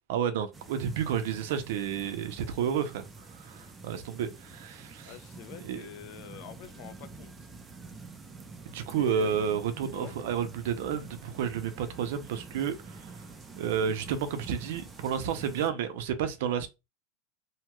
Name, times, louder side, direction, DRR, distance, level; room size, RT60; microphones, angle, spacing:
voice 1, 0.1-5.2 5.6-5.9 8.7-13.2 13.6-16.7, right 8 dB, 70° right, 0.5 m, -31 dB
sound 1, 0.5-15.7, right 3 dB, 15° right, 0.4 m, -47 dB
voice 2, 5.0-7.3 8.9-9.3 9.9-10.2, left 12 dB, 50° left, 0.4 m, -45 dB
2.8 x 2.2 x 3.0 m
supercardioid pair, 155°, 0 cm